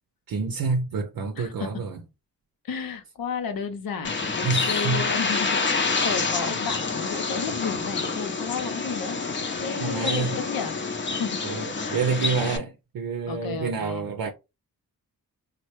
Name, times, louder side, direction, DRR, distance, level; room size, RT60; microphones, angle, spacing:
voice 1, 0.3-2.0 4.4-5.0 9.8-10.3 11.4-14.3, right 4 dB, 70° right, 0.6 m, -28 dB
voice 2, 1.4-1.7 2.6-9.2 9.6-10.8 11.0-11.4 11.7-12.1 13.3-14.1, left 6 dB, 70° left, 0.8 m, -33 dB
Bird, 4.0-12.6, left 4 dB, 30° left, 0.7 m, -28 dB
3.2 x 2.1 x 3.0 m
supercardioid pair, 45°, 36 cm